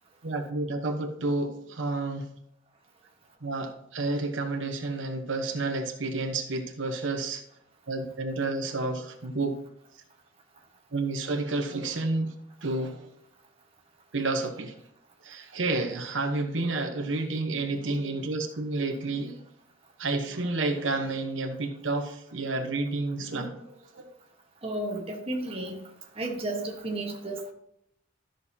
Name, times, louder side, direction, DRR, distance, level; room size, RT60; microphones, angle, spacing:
voice 1, 0.2-2.3 3.4-7.4 7.9-9.6 10.9-12.3 12.6-13.1 14.1-14.7 15.2-19.4 20.0-24.1, right 2 dB, 75° right, 1.1 m, -30 dB
voice 2, 24.6-25.8 26.2-27.5, right 1 dB, 30° right, 1.4 m, -33 dB
13.0 x 6.4 x 2.9 m
head